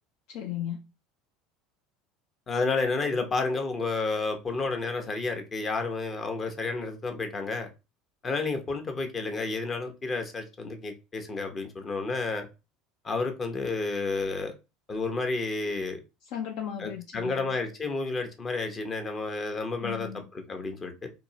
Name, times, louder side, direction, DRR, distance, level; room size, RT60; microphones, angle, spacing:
voice 1, 0.3-0.8 16.3-17.6 19.8-20.3, left 9 dB, 55° left, 0.5 m, -36 dB
voice 2, 2.5-7.7 8.2-12.5 13.0-14.6 14.9-16.0 16.8-21.1, left 3 dB, 30° left, 1.0 m, -31 dB
3.7 x 2.7 x 2.9 m
figure-of-eight pair, 65°, 0 cm